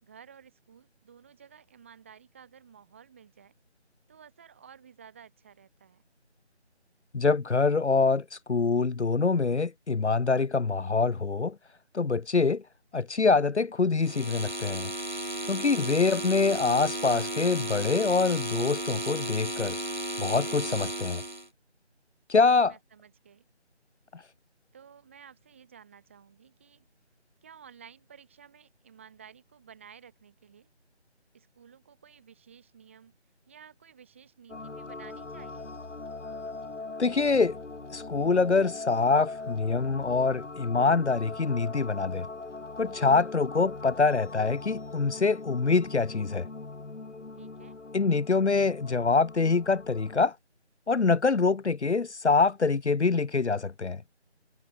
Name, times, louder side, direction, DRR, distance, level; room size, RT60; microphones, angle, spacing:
voice 1, 0.0-3.5 4.1-6.0 15.6-16.0 22.5-23.5 24.7-26.9 27.4-30.7 31.3-33.1 33.5-35.8 47.4-47.8, right 7 dB, 10° right, 3.5 m, -54 dB
voice 2, 7.1-11.5 11.9-12.6 12.9-14.9 15.5-19.8 20.2-21.2 22.3-22.7 37.0-37.6 37.9-42.3 42.8-46.5 47.9-50.3 50.9-54.0, left 4 dB, 70° left, 1.0 m, -25 dB
sound 1, 14.0-21.5, right 1 dB, 45° right, 0.5 m, -34 dB
sound 2, 34.5-50.3, left 3 dB, 90° left, 1.9 m, -41 dB
figure-of-eight pair, 175°, 35 cm